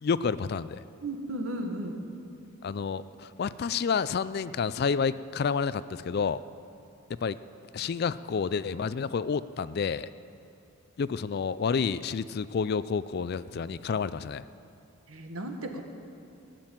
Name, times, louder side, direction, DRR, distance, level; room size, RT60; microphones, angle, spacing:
voice 1, 0.0-0.8 2.6-6.4 7.2-7.4 7.7-10.1 11.0-14.4, left 5 dB, 45° left, 16 dB, 0.3 m, -29 dB
voice 2, 1.0-2.0 15.1-15.8, right 1 dB, 70° right, 4 dB, 1.5 m, -34 dB
17.5 x 7.7 x 9.0 m, 2.6 s
head